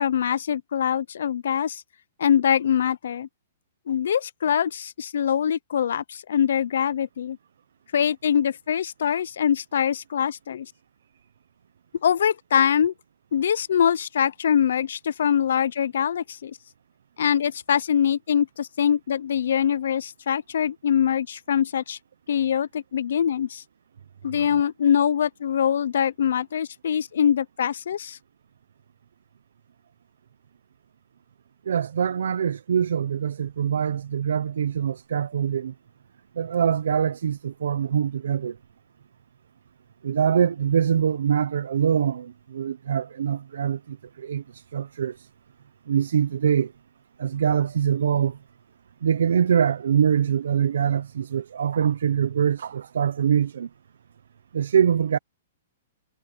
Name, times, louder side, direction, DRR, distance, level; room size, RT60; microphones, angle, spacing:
voice 1, 0.0-1.8 2.2-3.3 3.9-7.4 7.9-10.7 12.0-12.9 13.3-16.5 17.2-22.0 22.3-23.6 24.2-28.2, left 8 dB, 65° left, 0.6 m, -23 dB
voice 2, 31.7-35.7 36.4-38.6 40.0-45.3 45.9-46.7 47.2-48.4 49.0-53.7 54.5-55.2, right 8 dB, 80° right, 0.7 m, -24 dB
hypercardioid pair, 180°, 0 cm